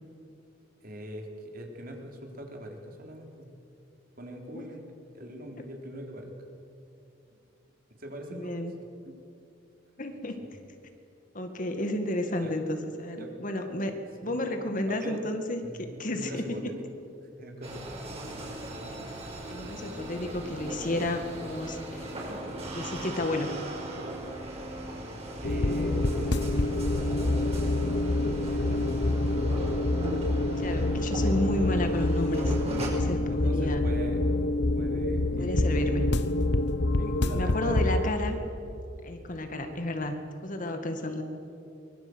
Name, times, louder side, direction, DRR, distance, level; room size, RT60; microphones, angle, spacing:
voice 1, 0.8-3.5 4.2-4.8 5.1-6.3 7.3-7.4 8.0-8.7 9.1-9.2 10.4-10.5 12.4-12.5 13.2-13.3 14.2-14.6 14.9-15.2 15.6-15.8 16.1-16.7 17.4-17.9 22.2-22.6 25.4-29.3 33.0-34.2 34.8-36.0 36.9-38.0 38.4-38.6, equal, 50° right, 2 dB, 3.9 m, -42 dB
voice 2, 8.3-8.8 10.0-10.4 11.3-14.0 14.2-15.6 16.0-16.7 18.9-19.0 19.5-22.3 22.7-23.5 30.6-33.8 35.4-36.1 37.3-38.4 39.0-41.2, left 1 dB, 45° left, 6 dB, 2.1 m, -32 dB
sound 1, 17.6-32.9, right 1 dB, 35° right, 5.7 m, -38 dB
sound 2, 25.4-38.1, left 2 dB, 60° left, 1.1 m, -27 dB
24.0 x 22.0 x 8.1 m, 2.7 s
head